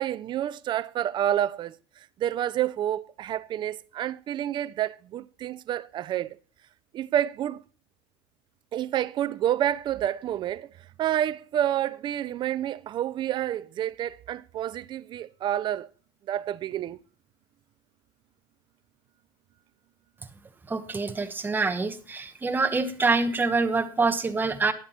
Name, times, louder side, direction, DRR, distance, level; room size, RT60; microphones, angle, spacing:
voice 1, 0.0-1.8 2.2-6.4 6.9-7.6 8.7-10.7 11.0-15.9 16.3-17.0, right 11 dB, 35° right, 0.5 m, -29 dB
voice 2, 20.7-24.7, right 3 dB, 15° right, 1.1 m, -25 dB
10.5 x 7.3 x 4.2 m
supercardioid pair, 120°, 13 cm